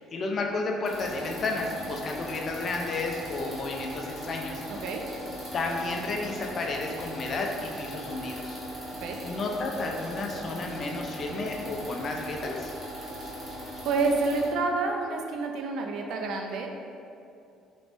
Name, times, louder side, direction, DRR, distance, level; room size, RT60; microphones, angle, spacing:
voice 1, 0.1-4.6 5.5-8.6 9.2-12.7, left 3 dB, 35° left, 1 dB, 0.3 m, -32 dB
sound 1, 0.8-14.5, equal, ahead, 1.0 m, -39 dB
voice 2, 13.8-16.7, right 3 dB, 60° right, 3 dB, 0.3 m, -28 dB
3.3 x 3.0 x 2.6 m, 2.5 s
cardioid pair, 165°, 0 cm